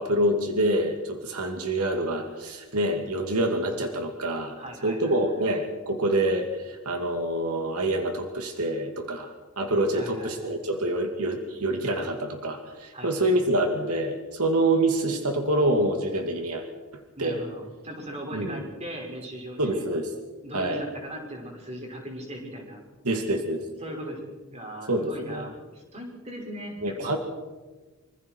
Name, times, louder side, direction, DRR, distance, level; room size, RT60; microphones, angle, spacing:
voice 1, 0.0-4.6 4.8-16.6 17.2-17.4 18.3-18.6 19.6-20.1 20.5-20.8 23.0-23.6 24.9-25.5 26.8-27.2, right 1 dB, 80° right, 4 dB, 2.4 m, -26 dB
voice 2, 4.6-5.4 9.9-10.6 12.9-13.5 17.2-19.8 20.4-22.8 23.8-27.2, right 1 dB, 30° right, 0 dB, 5.9 m, -39 dB
26.0 x 25.5 x 4.7 m, 1.3 s
head